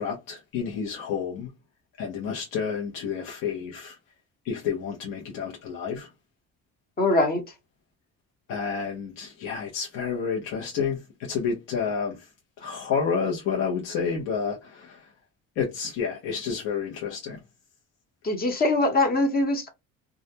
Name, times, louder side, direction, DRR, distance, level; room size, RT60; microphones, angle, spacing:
voice 1, 0.0-1.5 2.0-3.9 4.4-6.1 8.5-12.2 12.6-15.0 15.6-17.4, left 6 dB, 80° left, 0.9 m, -30 dB
voice 2, 7.0-7.4 18.2-19.7, left 2 dB, 30° left, 0.9 m, -22 dB
2.4 x 2.1 x 2.7 m
cardioid pair, 125°, 32 cm